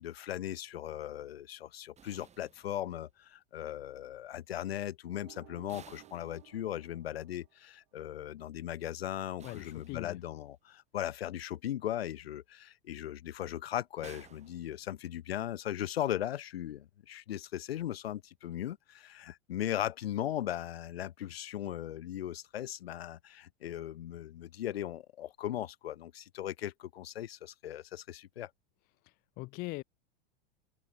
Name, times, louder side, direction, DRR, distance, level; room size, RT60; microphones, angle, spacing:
voice 1, 0.0-28.5, left 12 dB, 90° left, 1.6 m, -38 dB
sound 1, 1.9-3.2 5.7-7.0 9.4-10.6 14.0-15.3, right 8 dB, 25° right, 4.2 m, -57 dB
sound 2, 5.1-8.0, right 26 dB, 60° right, 2.6 m, -58 dB
voice 2, 9.4-10.2 29.4-29.8, left 22 dB, 30° left, 0.4 m, -40 dB
open air
supercardioid pair, 125°, 30 cm